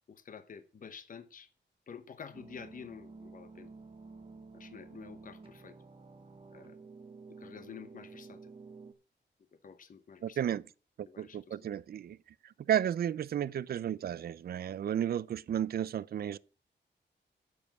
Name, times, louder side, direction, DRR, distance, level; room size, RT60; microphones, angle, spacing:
voice 1, 0.1-1.5 1.9-3.7 4.5-5.8 6.5-6.8 7.4-8.5 9.6-10.5 11.1-11.5, left 6 dB, 45° left, 0.8 m, -49 dB
sound 1, 2.3-8.9, right 4 dB, 30° right, 1.0 m, -51 dB
voice 2, 10.2-10.6 11.0-12.2 12.4-16.4, right 10 dB, 55° right, 0.4 m, -33 dB
9.6 x 7.3 x 5.9 m
wide cardioid pair, 160°, 19 cm